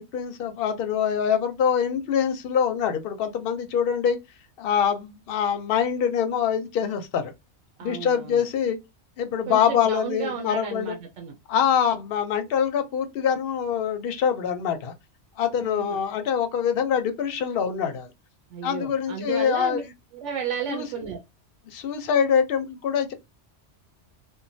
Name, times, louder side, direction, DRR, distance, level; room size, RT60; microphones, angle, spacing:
voice 1, 0.0-4.2 4.6-7.3 7.8-8.8 9.2-11.0 11.5-14.9 15.4-18.1 18.6-19.9 20.7-20.9 21.7-23.1, left 8 dB, 60° left, 0.7 m, -24 dB
voice 2, 7.8-8.4 9.5-11.3 15.6-16.0 18.5-19.8 20.1-21.2, right 7 dB, 85° right, 0.9 m, -33 dB
2.9 x 2.1 x 2.6 m
omnidirectional pair, 1.2 m